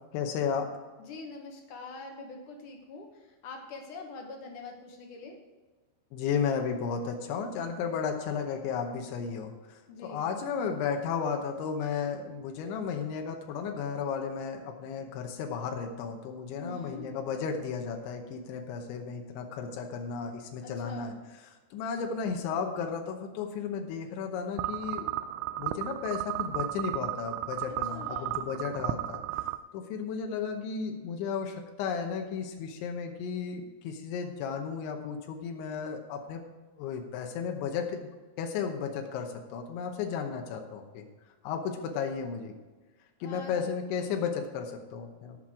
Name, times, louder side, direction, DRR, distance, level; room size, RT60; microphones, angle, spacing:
voice 1, 0.1-0.7 6.1-21.1 21.5-25.1 25.6-29.4 29.7-36.4 36.8-38.1 38.4-41.1 41.4-42.5 43.2-45.4, left 6 dB, 90° left, 3 dB, 3.4 m, -34 dB
voice 2, 1.0-5.4 9.9-10.2 16.6-17.1 20.6-21.1 27.7-28.4 43.2-43.6, left 3 dB, 75° left, 2 dB, 1.9 m, -44 dB
sound 1, 24.6-29.6, right 14 dB, 85° right, 2.7 m, -34 dB
17.5 x 6.1 x 4.9 m, 1.3 s
omnidirectional pair, 5.1 m